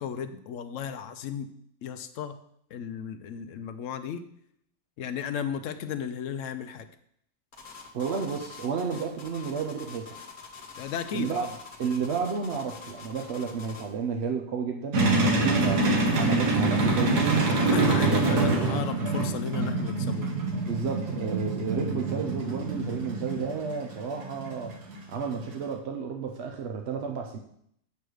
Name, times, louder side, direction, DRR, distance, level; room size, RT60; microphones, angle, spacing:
voice 1, 0.0-1.5 1.8-2.4 2.7-4.3 5.0-6.9 10.8-11.5 17.7-20.5, left 8 dB, 70° left, 10 dB, 0.8 m, -35 dB
sound 1, 7.5-13.9, left 5 dB, 35° left, 1.1 m, -45 dB
voice 2, 7.9-10.1 11.1-11.4 11.8-17.5 18.0-18.8 20.7-24.8 25.1-27.4, right 6 dB, 60° right, 3 dB, 0.7 m, -32 dB
sound 2, 14.9-25.7, right 2 dB, 80° right, 1.7 m, -26 dB
8.2 x 3.3 x 6.2 m, 0.70 s
omnidirectional pair, 1.7 m